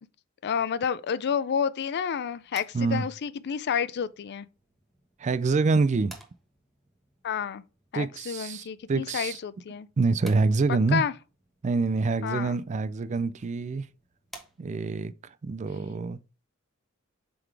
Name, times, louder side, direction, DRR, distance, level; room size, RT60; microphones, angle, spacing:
voice 1, 0.4-4.5 7.2-7.6 7.9-9.9 10.9-11.1 12.2-12.6, left 7 dB, 50° left, 0.4 m, -30 dB
sound 1, 2.2-15.0, right 1 dB, ahead, 1.2 m, -55 dB
voice 2, 2.7-3.1 5.2-6.1 7.9-9.4 10.0-11.0 11.6-13.8 14.6-15.1 15.4-16.2, right 3 dB, 35° right, 0.4 m, -26 dB
7.8 x 4.0 x 3.3 m
head